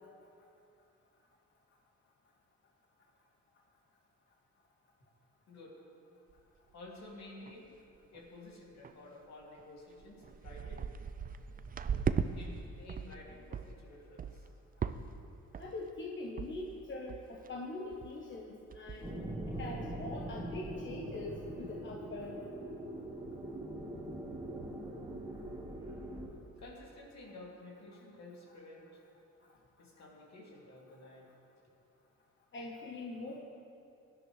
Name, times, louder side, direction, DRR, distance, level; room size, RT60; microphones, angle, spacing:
voice 1, 5.5-5.8 6.7-7.7 8.1-10.9 12.3-14.5 26.6-29.0 29.8-31.3, left 2 dB, 60° left, -2 dB, 2.7 m, -52 dB
sound 1, 6.3-6.4 6.9-7.0 7.2-7.7 8.0-8.2 8.8-8.9 9.6-9.7 10.0-12.3 12.6-13.2 13.5-13.7 14.2-14.5 14.8-15.2 15.5-15.9 16.4-16.5 16.8-16.9 17.1-17.5 17.9-18.1 18.4-18.5 18.7-19.1 19.5-19.7, right 6 dB, 30° right, 0.4 m, -37 dB
voice 2, 15.6-19.1 19.5-22.5 27.9-28.0 32.5-33.4, left 2 dB, 40° left, -1 dB, 1.2 m, -43 dB
sound 2, 19.0-26.3, right 1 dB, 10° right, 1.8 m, -42 dB
17.0 x 11.0 x 3.3 m, 2.7 s
cardioid pair, 90°, 30 cm